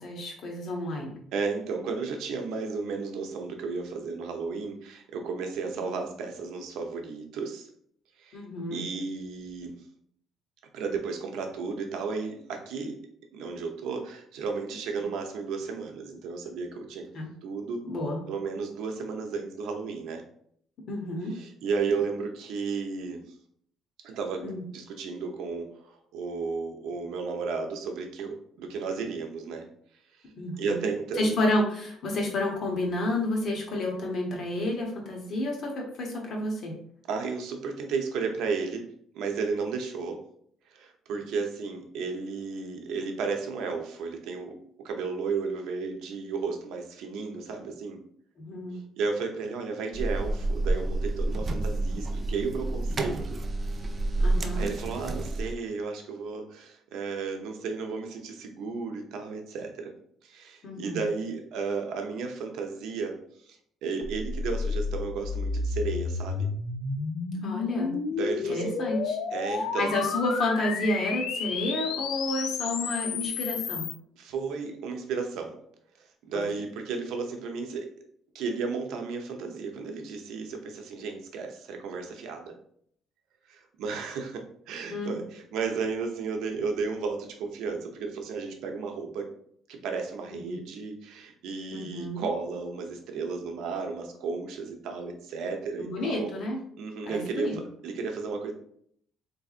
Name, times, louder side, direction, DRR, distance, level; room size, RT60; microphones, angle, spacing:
voice 1, 0.0-1.2 5.8-6.0 8.3-8.8 17.1-17.3 17.8-18.2 20.9-21.3 24.4-24.6 30.4-30.9 31.2-36.8 48.4-48.8 51.3-51.4 54.2-54.7 60.6-61.0 67.4-67.9 68.5-69.2 69.8-73.9 76.3-76.4 84.9-85.2 90.3-90.6 91.7-92.2 95.8-96.6 97.0-97.6, left 1 dB, 45° left, 0 dB, 1.1 m, -30 dB
voice 2, 1.3-7.7 8.2-8.4 8.7-9.8 10.7-13.0 13.3-17.0 17.4-17.8 18.3-20.2 21.3-23.2 24.0-24.4 24.7-29.7 30.6-31.4 37.1-38.8 39.1-40.2 40.7-44.5 44.8-48.0 48.7-53.4 54.5-59.9 60.2-63.2 63.5-66.5 68.1-68.8 69.3-70.0 74.2-75.5 76.2-77.9 78.3-82.6 83.5-89.3 89.7-96.3 96.8-98.5, right 4 dB, 80° right, 4 dB, 0.7 m, -33 dB
sound 1, 49.9-55.5, right 2 dB, 25° right, 0.4 m, -29 dB
sound 2, 64.0-73.9, left 5 dB, 75° left, 0.5 m, -31 dB
4.0 x 3.4 x 2.4 m, 0.65 s
cardioid pair, 150°, 0 cm